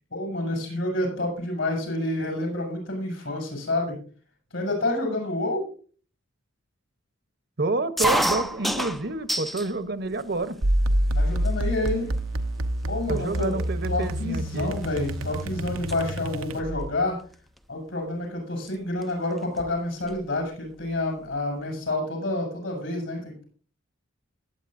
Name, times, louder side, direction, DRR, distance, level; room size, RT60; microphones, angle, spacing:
voice 1, 0.1-4.0 4.5-5.6 11.2-12.1 12.9-17.2 17.7-23.4, left 2 dB, 70° left, 2 dB, 6.9 m, -29 dB
voice 2, 7.6-10.6 13.1-14.7, right 3 dB, 55° right, 11 dB, 0.9 m, -28 dB
sound 1, 8.0-9.7 10.1-10.8 11.5-11.6 11.8-12.2 12.8-12.9 13.2-15.4 15.7-16.0 17.3-17.6 18.7-18.8 19.0-19.1 19.4-20.3, equal, ahead, 0.5 m, -29 dB
sound 2, 10.6-17.0, right 1 dB, 90° right, 0.9 m, -27 dB
20.5 x 8.9 x 2.6 m, 0.41 s
head